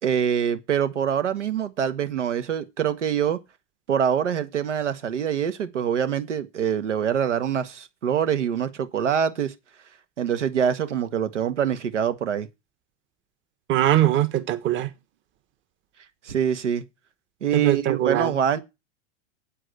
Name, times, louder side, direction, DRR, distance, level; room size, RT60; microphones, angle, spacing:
voice 1, 0.0-3.4 3.9-9.5 10.2-12.5 16.2-16.8 17.4-18.6, right 8 dB, 85° right, 1.7 m, -24 dB
voice 2, 13.7-14.9 17.5-18.3, right 12 dB, 35° right, 1.4 m, -21 dB
8.6 x 7.7 x 7.8 m
hypercardioid pair, 105°, 35 cm